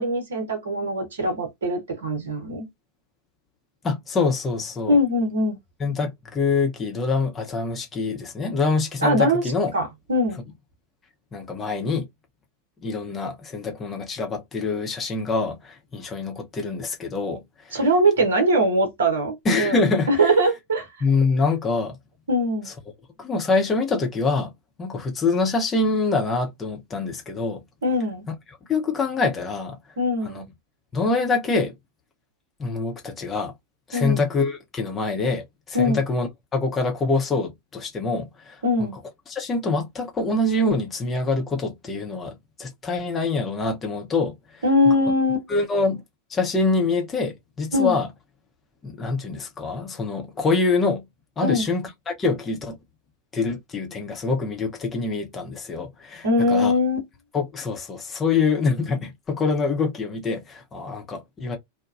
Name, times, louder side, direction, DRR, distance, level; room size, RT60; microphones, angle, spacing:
voice 1, 0.0-2.7 4.9-5.6 9.0-9.4 9.7-10.4 17.7-20.9 22.3-22.7 27.8-28.2 30.0-30.5 33.9-34.2 35.7-36.0 38.6-39.0 44.6-45.4 47.7-48.0 51.4-51.7 56.2-57.0, equal, 65° right, 0.9 m, -22 dB
voice 2, 3.8-5.0 5.8-9.7 11.3-12.1 12.8-17.8 19.4-20.3 21.0-22.0 23.2-24.5 24.8-27.6 28.3-28.4 28.7-29.8 30.2-30.4 30.9-31.8 32.6-33.5 33.9-38.9 39.3-44.6 45.5-46.0 46.3-48.1 48.8-51.0 51.4-52.8 53.3-56.7 57.3-61.6, left 3 dB, 20° left, 0.7 m, -25 dB
2.8 x 2.2 x 2.4 m
figure-of-eight pair, 90°, 0 cm